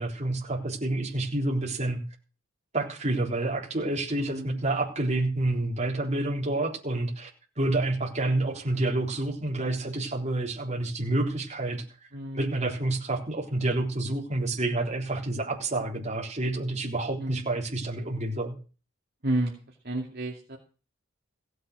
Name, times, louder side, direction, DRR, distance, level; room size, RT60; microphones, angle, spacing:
voice 1, 0.0-2.0 2.7-7.3 7.6-11.8 12.3-18.6, right 2 dB, 35° right, 0 dB, 3.7 m, -28 dB
voice 2, 4.2-4.6 12.1-12.5 17.2-17.5 19.2-19.5 19.8-20.6, right 1 dB, 50° right, -1 dB, 2.5 m, -31 dB
16.0 x 8.1 x 6.4 m, 0.36 s
head